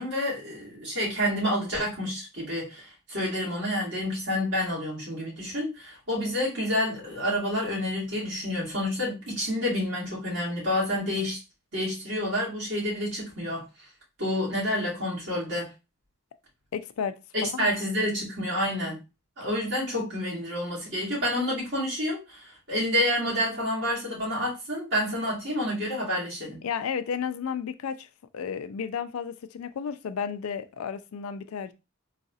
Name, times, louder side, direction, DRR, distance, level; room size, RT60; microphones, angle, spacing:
voice 1, 0.0-11.4 11.7-13.6 14.2-15.7 17.3-19.0 19.4-26.6, left 1 dB, 55° right, 2.2 m, -29 dB
voice 2, 16.7-17.7 26.6-28.1 28.3-31.7, left 7 dB, 85° left, 0.4 m, -33 dB
3.9 x 2.4 x 2.7 m
head